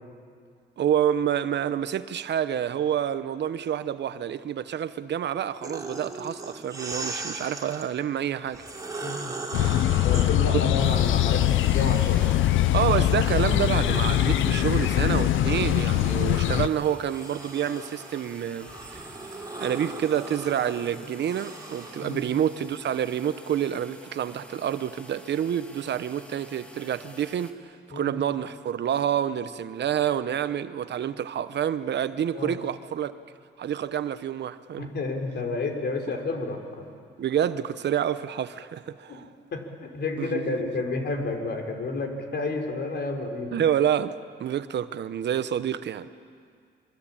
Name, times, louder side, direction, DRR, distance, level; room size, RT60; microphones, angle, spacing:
voice 1, 0.8-8.6 10.5-10.6 12.7-19.1 19.3-33.1 33.6-34.9 37.2-39.3 40.2-40.7 43.5-46.1, right 9 dB, 60° right, 1.0 m, -28 dB
sound 1, 5.6-7.9 8.5-12.5 13.0-22.2, right 2 dB, 20° right, 3.7 m, -39 dB
voice 2, 9.0-9.3 10.0-12.3 22.0-22.2 27.9-28.2 32.3-32.6 34.8-36.9 39.1-39.2 39.5-43.6, left 3 dB, 55° left, 4.7 m, -30 dB
sound 2, 9.5-16.7, left 13 dB, 80° left, 0.7 m, -22 dB
sound 3, 10.8-27.5, equal, 5° left, 2.8 m, -48 dB
27.5 x 23.0 x 8.9 m
cardioid pair, 90°, 20 cm